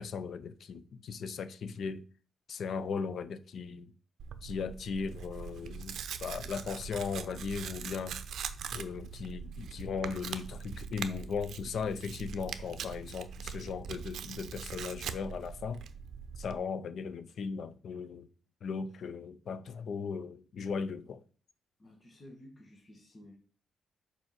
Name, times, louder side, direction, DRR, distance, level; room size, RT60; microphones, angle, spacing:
voice 1, 0.0-2.0 2.5-3.9 4.4-8.2 8.7-15.9 16.4-18.3 18.6-21.2, left 5 dB, 60° left, 0.5 m, -37 dB
Tearing, 4.2-16.6, right 7 dB, 70° right, 0.6 m, -42 dB
voice 2, 21.8-23.4, left 1 dB, 30° left, 1.5 m, -53 dB
5.4 x 4.8 x 5.8 m
cardioid pair, 125°, 0 cm